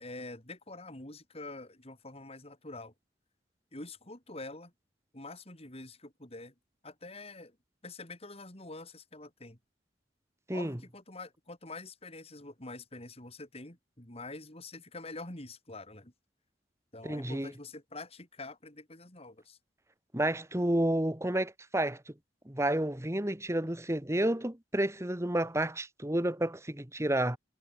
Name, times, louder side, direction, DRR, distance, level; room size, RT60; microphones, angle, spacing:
voice 1, 0.0-2.9 3.7-4.7 5.1-6.5 6.8-7.6 7.8-9.6 10.5-16.1 16.9-19.6, left 2 dB, 35° left, 4.3 m, -46 dB
voice 2, 17.0-17.5 20.1-22.0 22.5-27.4, right 1 dB, 15° right, 1.6 m, -30 dB
head